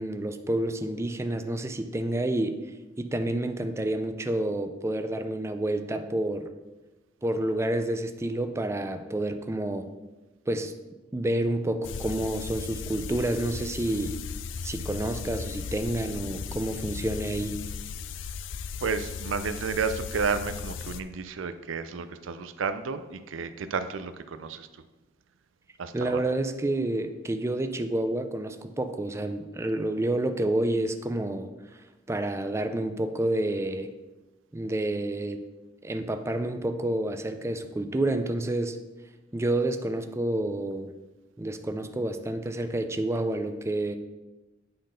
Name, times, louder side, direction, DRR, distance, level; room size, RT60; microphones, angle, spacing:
voice 1, 0.0-2.6 3.0-6.5 7.2-9.9 10.5-10.7 11.1-14.2 14.6-17.6 25.9-31.5 32.1-33.9 34.5-35.4 35.8-38.8 39.3-40.9 41.4-44.0, right 1 dB, 15° right, 7 dB, 0.4 m, -29 dB
sound 1, 11.8-21.0, left 6 dB, 70° left, 0.4 m, -36 dB
voice 2, 18.8-24.7 25.8-26.2, right 5 dB, 85° right, 11 dB, 0.5 m, -31 dB
8.8 x 3.9 x 5.1 m, 1.1 s
head